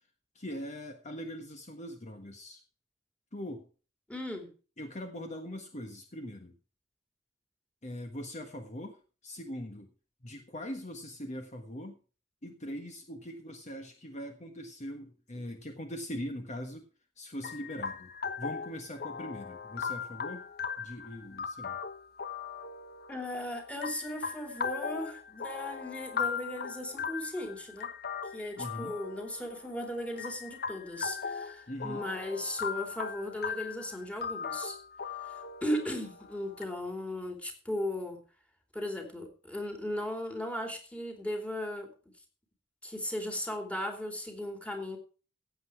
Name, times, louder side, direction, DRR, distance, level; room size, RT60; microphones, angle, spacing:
voice 1, 0.3-2.6 3.3-3.7 4.8-6.5 7.8-9.9 10.2-12.0 12.4-16.9 17.2-18.1 18.4-20.5 20.8-21.8 28.6-28.9 31.7-32.1, equal, 40° left, 6 dB, 1.5 m, -41 dB
voice 2, 4.1-4.5 23.1-27.9 28.3-34.8 35.3-35.4 35.6-38.2 38.7-41.9 42.8-45.0, left 1 dB, 5° left, 4 dB, 3.0 m, -37 dB
sound 1, 17.4-36.6, left 6 dB, 55° left, 1.1 m, -39 dB
16.0 x 8.2 x 4.7 m, 0.37 s
head